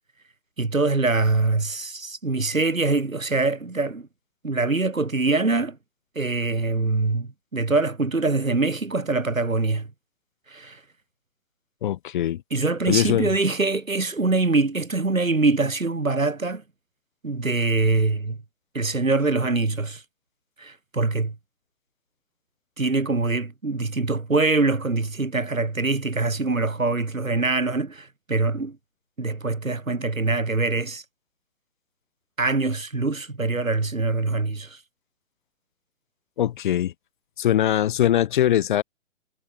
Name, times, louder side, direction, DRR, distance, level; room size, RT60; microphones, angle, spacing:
voice 1, 0.6-4.1 4.4-5.8 6.2-9.9 10.5-10.8 12.5-16.6 17.2-18.4 18.7-20.0 20.6-21.3 22.8-28.8 29.2-31.0 32.4-34.8, right 3 dB, 85° right, 4.3 m, -24 dB
voice 2, 11.8-12.4 12.9-13.3 36.4-36.9 37.4-38.8, left 11 dB, 40° left, 2.1 m, -21 dB
figure-of-eight pair, 135°, 39 cm